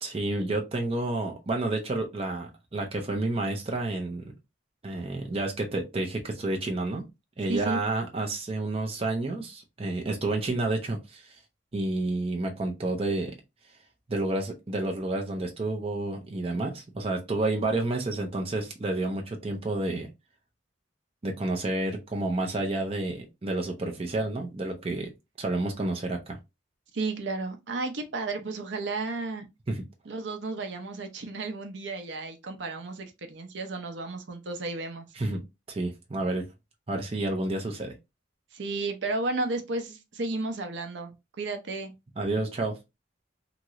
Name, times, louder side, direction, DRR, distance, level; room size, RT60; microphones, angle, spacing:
voice 1, 0.0-4.3 4.8-7.1 7.4-11.4 11.7-13.4 14.1-20.1 21.2-25.1 25.4-26.4 29.7-29.8 35.2-36.5 36.9-37.9 42.2-42.8, right 2 dB, 30° right, 0.5 m, -30 dB
voice 2, 7.5-7.8 26.9-29.5 30.1-35.1 38.5-41.9, right 3 dB, 70° right, 0.6 m, -33 dB
3.0 x 2.9 x 2.4 m
head